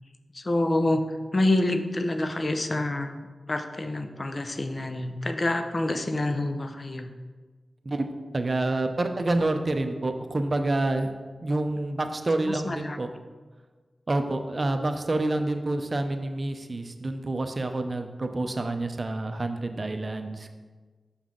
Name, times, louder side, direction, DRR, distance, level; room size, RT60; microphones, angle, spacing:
voice 1, 0.3-1.0 1.3-7.1 12.4-13.0, left 1 dB, 45° left, 7 dB, 0.6 m, -27 dB
voice 2, 8.3-11.1 11.4-13.1 14.1-20.5, right 2 dB, 45° right, 6 dB, 0.6 m, -28 dB
6.1 x 5.6 x 3.8 m, 1.4 s
cardioid pair, 40°, 0 cm